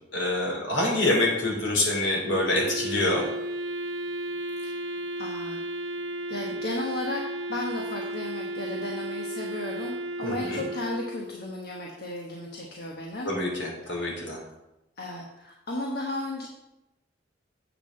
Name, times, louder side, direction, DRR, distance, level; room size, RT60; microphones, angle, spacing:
voice 1, 0.1-3.2 10.2-10.6 13.2-14.4, left 1 dB, 70° left, -1 dB, 3.1 m, -26 dB
Wind instrument woodwind instrument, 2.2-11.5, right 1 dB, 65° right, 0.8 m, -34 dB
voice 2, 5.2-5.6 6.3-13.3 13.8-14.5 15.0-16.5, left 2 dB, 55° left, -1 dB, 1.1 m, -35 dB
8.2 x 5.7 x 6.3 m, 0.94 s
head